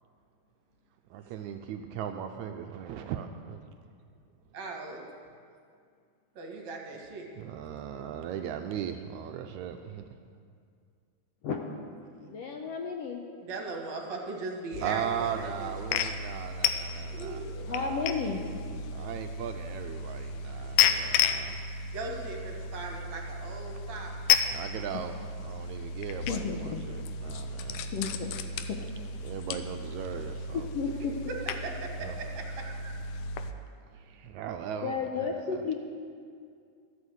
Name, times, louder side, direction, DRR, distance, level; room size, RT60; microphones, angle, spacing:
voice 1, 1.1-3.6 7.4-10.2 14.8-18.1 18.9-21.6 24.5-27.9 29.2-30.7 32.0-32.1 33.9-35.6, right 9 dB, 80° right, 6 dB, 1.7 m, -38 dB
voice 2, 4.5-5.0 6.4-7.4 12.1-12.3 13.4-16.0 16.3-16.5 17.1-17.9 21.9-24.2 31.3-32.9, right 3 dB, 65° right, 1 dB, 2.7 m, -39 dB
voice 3, 12.3-13.2 17.7-18.4 26.3-26.8 27.9-28.3 28.7-28.8 30.5-31.1 34.8-35.7, left 5 dB, 70° left, 2 dB, 1.6 m, -32 dB
sound 1, 14.7-33.5, left 6 dB, 90° left, 2.2 m, -33 dB
13.0 x 8.2 x 8.0 m, 2.2 s
omnidirectional pair, 3.6 m